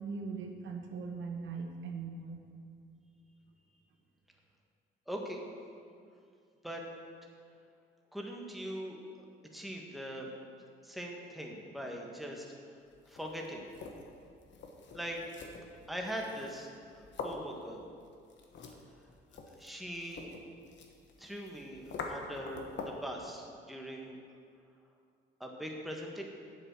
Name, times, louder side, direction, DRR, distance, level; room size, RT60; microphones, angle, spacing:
voice 1, 0.0-2.5, right 4 dB, 70° right, 3 dB, 1.1 m, -40 dB
voice 2, 5.1-5.4 6.6-6.8 8.1-9.3 9.5-10.3 10.8-12.5 13.1-13.7 14.9-15.2 15.9-17.8 19.5-20.4 21.2-24.2 25.4-26.2, equal, ahead, 0 dB, 1.5 m, -41 dB
sound 1, 12.9-23.1, left 4 dB, 65° left, 1.3 m, -46 dB
8.2 x 7.6 x 6.2 m, 2.3 s
cardioid pair, 90°, 20 cm